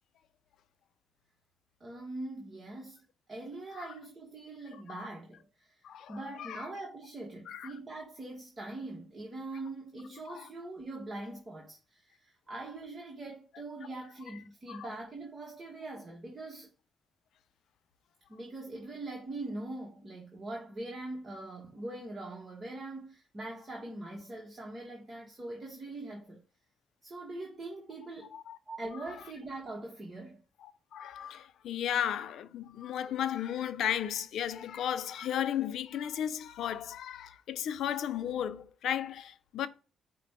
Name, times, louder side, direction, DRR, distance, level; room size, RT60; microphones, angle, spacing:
voice 1, 1.8-3.0 3.3-5.8 6.1-16.7 18.3-26.4 27.0-28.3 28.7-30.4, right 2 dB, 30° right, 1.1 m, -42 dB
voice 2, 5.8-6.6 7.5-7.7 10.3-10.5 14.7-14.9 28.3-28.6 30.9-39.7, left 10 dB, 75° left, 0.4 m, -35 dB
5.2 x 2.2 x 4.2 m
cardioid pair, 90°, 0 cm